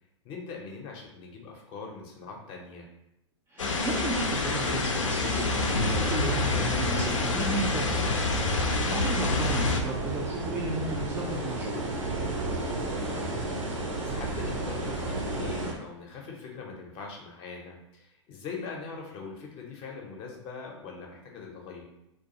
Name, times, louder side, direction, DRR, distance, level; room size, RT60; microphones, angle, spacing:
voice 1, 0.2-2.9 9.1-9.5 13.0-13.3 14.0-21.8, left 4 dB, 35° left, 0 dB, 0.6 m, -42 dB
voice 2, 3.5-8.2 8.6-11.8, right 2 dB, 15° right, -2 dB, 0.4 m, -34 dB
sound 1, 3.6-9.8, left 3 dB, 85° left, 0.4 m, -27 dB
sound 2, 5.5-15.7, right 2 dB, 90° right, 0.7 m, -33 dB
2.3 x 2.2 x 2.7 m, 0.82 s
hypercardioid pair, 105°, 16 cm